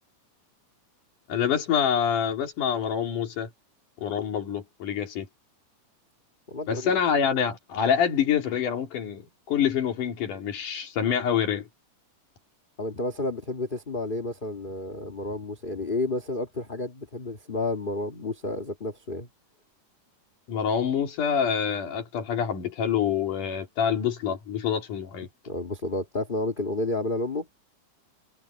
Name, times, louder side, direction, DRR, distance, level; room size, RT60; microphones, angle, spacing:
voice 1, 1.3-3.5 4.0-5.3 6.7-9.2 9.5-11.7 20.5-25.3, left 8 dB, 75° left, 4.0 m, -26 dB
voice 2, 6.5-6.9 12.8-19.3 25.4-27.5, left 2 dB, 20° left, 1.5 m, -31 dB
omnidirectional pair, 3.7 m